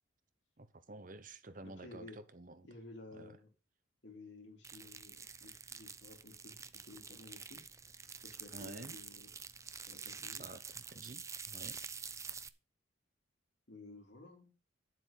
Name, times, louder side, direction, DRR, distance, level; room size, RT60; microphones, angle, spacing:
voice 1, 0.6-2.7 3.1-3.4 8.5-9.0 10.3-11.8, right 2 dB, 45° right, 1.0 m, -51 dB
voice 2, 1.6-2.2 2.6-3.5 4.0-7.6 8.2-9.3 9.9-10.4 13.7-14.5, left 2 dB, 65° left, 3.6 m, -54 dB
sound 1, 4.6-12.5, right 6 dB, 15° right, 0.5 m, -48 dB
10.0 x 7.7 x 5.1 m
head